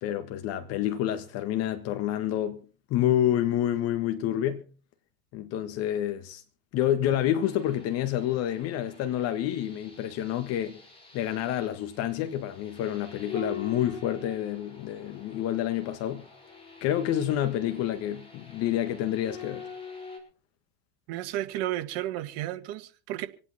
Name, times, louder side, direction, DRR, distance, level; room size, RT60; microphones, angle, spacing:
voice 1, 0.0-2.6 2.9-4.6 5.3-6.4 6.7-10.8 11.1-16.2 16.8-19.7, left 11 dB, 50° left, 1.7 m, -28 dB
sound 1, 7.4-20.2, left 6 dB, 15° left, 6.2 m, -45 dB
voice 2, 21.1-23.3, right 14 dB, 60° right, 1.8 m, -32 dB
26.5 x 8.9 x 4.3 m
hypercardioid pair, 100°, 31 cm